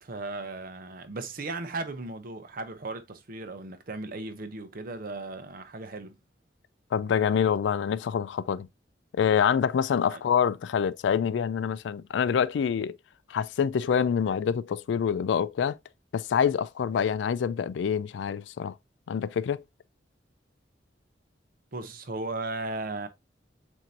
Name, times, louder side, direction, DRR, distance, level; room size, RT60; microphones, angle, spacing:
voice 1, 0.0-6.2 10.1-10.2 21.7-23.1, right 3 dB, 55° right, 0.7 m, -36 dB
voice 2, 6.9-8.7 9.1-13.0 13.3-15.8 16.1-18.7 19.1-19.6, left 7 dB, 90° left, 0.3 m, -26 dB
7.3 x 2.7 x 2.6 m
head